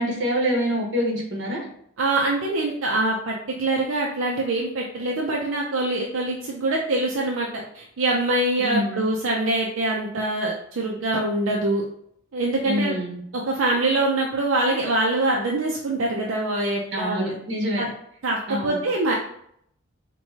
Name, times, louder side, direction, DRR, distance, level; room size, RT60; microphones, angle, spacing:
voice 1, 0.0-1.6 8.6-9.0 12.6-13.2 16.9-17.8 18.5-18.8, equal, 60° right, -2 dB, 1.1 m, -26 dB
voice 2, 2.0-11.8 12.3-13.0 13.5-17.4 17.8-17.9 18.2-19.1, right 2 dB, 80° right, -2 dB, 0.5 m, -24 dB
4.5 x 2.3 x 2.8 m, 0.69 s
head